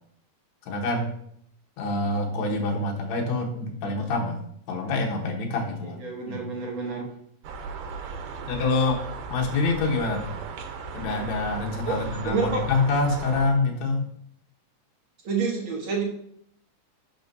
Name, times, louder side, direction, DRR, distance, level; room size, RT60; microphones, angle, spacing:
voice 1, 0.7-1.1 1.8-4.4 4.7-6.0 6.3-6.5 8.5-9.0 9.3-10.3 10.9-14.1, left 3 dB, 70° left, 0 dB, 2.3 m, -26 dB
voice 2, 6.0-7.1 11.8-12.6 15.2-16.0, right 4 dB, 55° right, 0 dB, 1.5 m, -28 dB
sound 1, 7.4-13.5, right 5 dB, 85° right, 2.4 m, -36 dB
11.0 x 5.3 x 2.7 m, 0.68 s
omnidirectional pair, 3.6 m